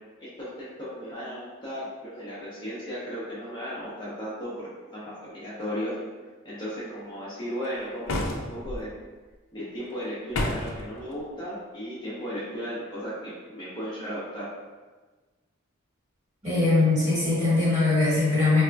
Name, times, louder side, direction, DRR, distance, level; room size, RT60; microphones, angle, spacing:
voice 1, 0.2-5.9 6.4-8.9 9.5-14.5, equal, 20° left, -9 dB, 0.7 m, -35 dB
sound 1, 8.1-8.8 10.3-10.8, left 2 dB, 85° left, 0.4 m, -29 dB
voice 2, 16.4-18.6, left 3 dB, 35° right, -9 dB, 1.4 m, -21 dB
4.1 x 2.4 x 2.2 m, 1.3 s
head